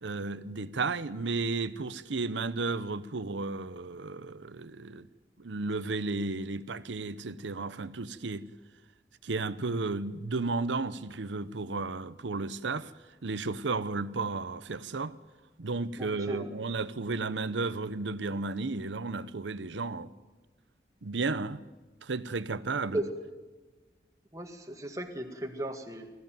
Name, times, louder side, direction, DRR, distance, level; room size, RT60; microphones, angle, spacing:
voice 1, 0.0-5.1 5.4-8.5 9.2-12.9 13.2-15.1 15.6-20.1 21.0-21.6 22.0-23.0, right 3 dB, 85° right, 0.8 m, -33 dB
voice 2, 16.0-16.5 22.9-23.0 24.3-26.1, right 1 dB, 20° right, 1.9 m, -36 dB
20.5 x 14.5 x 9.2 m
head